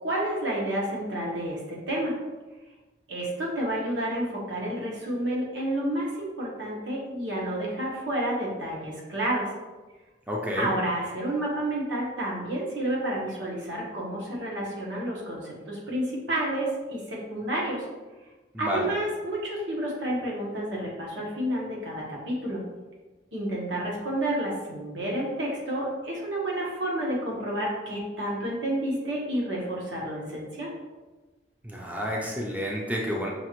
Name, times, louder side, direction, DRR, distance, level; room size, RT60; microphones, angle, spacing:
voice 1, 0.0-2.2 3.1-9.5 10.6-17.9 18.6-22.6 23.3-30.7, right 1 dB, 80° right, -3 dB, 1.2 m, -30 dB
voice 2, 10.3-10.7 18.5-18.9 31.6-33.3, equal, 10° right, -3 dB, 0.5 m, -30 dB
5.9 x 2.4 x 3.0 m, 1.2 s
head